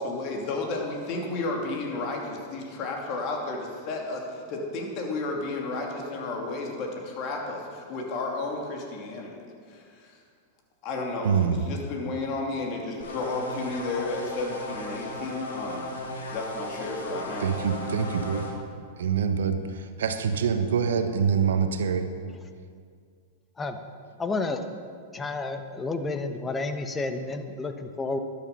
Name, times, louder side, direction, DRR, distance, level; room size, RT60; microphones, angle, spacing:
voice 1, 0.0-9.4 9.7-10.2 10.8-15.9 16.3-17.5, left 2 dB, 45° left, 0 dB, 2.8 m, -32 dB
voice 2, 11.2-11.6 17.4-18.5 19.0-22.1, right 6 dB, 75° right, 8 dB, 1.1 m, -25 dB
sound 1, 13.0-18.5, left 1 dB, 85° left, 2.2 m, -36 dB
voice 3, 24.2-24.6 25.1-28.2, left 3 dB, 15° left, 8 dB, 1.1 m, -30 dB
13.0 x 10.5 x 5.5 m, 2.2 s
hypercardioid pair, 105°, 0 cm